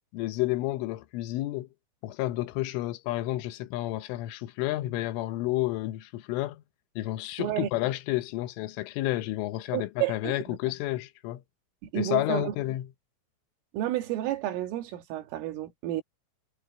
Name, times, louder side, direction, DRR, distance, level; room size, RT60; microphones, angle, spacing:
voice 1, 0.1-1.7 2.0-6.6 7.0-11.4 12.0-12.9, left 16 dB, 80° left, 3.4 m, -30 dB
voice 2, 7.4-7.7 9.7-10.6 11.9-12.6 13.7-16.0, right 14 dB, 90° right, 4.6 m, -31 dB
omnidirectional pair, 5.7 m